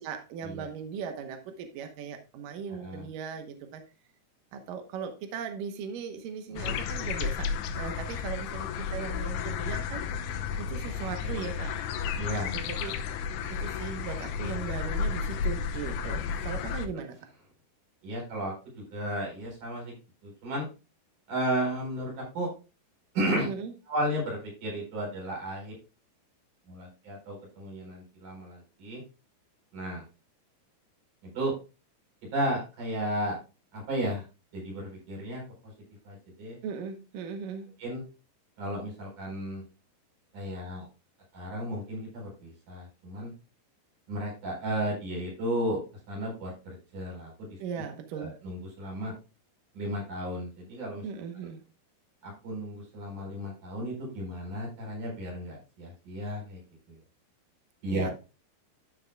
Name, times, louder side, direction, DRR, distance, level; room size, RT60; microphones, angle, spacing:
voice 1, 0.0-3.8 4.5-10.0 10.6-11.7 12.5-13.0 13.5-17.2 23.5-23.7 36.6-37.7 47.6-48.4 51.0-51.6 57.9-58.1, right 6 dB, 80° right, 6 dB, 1.9 m, -38 dB
sound 1, 6.6-16.9, left 6 dB, 90° left, 3.3 m, -32 dB
voice 2, 12.2-12.6 12.8-12.9 18.0-19.9 20.2-20.7 21.3-22.5 23.1-23.5 23.9-25.7 26.7-29.0 29.7-30.0 31.2-31.5 32.3-33.4 33.7-34.2 34.5-35.4 36.0-36.6 37.8-38.0 38.6-39.6 40.3-40.8 41.3-43.3 44.1-45.8 46.1-47.5 48.2-49.1 49.7-51.0 52.2-56.6 57.8-58.1, right 1 dB, 45° right, -2 dB, 5.7 m, -34 dB
13.0 x 6.4 x 2.2 m, 0.30 s
omnidirectional pair, 5.3 m